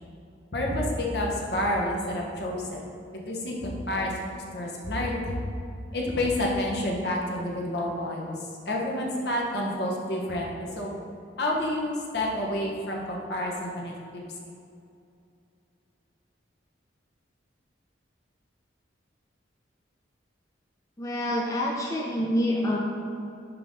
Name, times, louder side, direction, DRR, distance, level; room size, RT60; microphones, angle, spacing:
voice 1, 0.5-2.8 3.3-4.1 4.5-5.3 5.9-8.4 8.7-10.9 11.4-14.2, left 1 dB, 60° left, -2 dB, 1.2 m, -29 dB
voice 2, 21.0-22.8, left 1 dB, 20° left, -2 dB, 0.5 m, -27 dB
10.5 x 3.7 x 4.0 m, 2.5 s
head